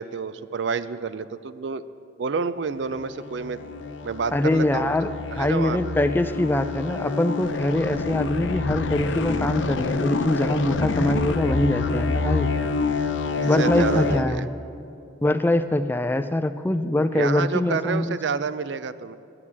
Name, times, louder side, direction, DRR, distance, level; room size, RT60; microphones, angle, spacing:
voice 1, 0.0-1.8 2.2-3.6 4.0-4.9 5.4-5.8 13.4-14.5 17.1-19.2, right 5 dB, 75° right, 14 dB, 0.4 m, -29 dB
sound 1, 2.8-14.2, left 3 dB, 90° left, 0.7 m, -27 dB
voice 2, 4.3-12.5 13.4-14.5 15.2-18.2, left 1 dB, 10° left, 11 dB, 0.3 m, -23 dB
11.0 x 9.8 x 7.3 m, 2.7 s
head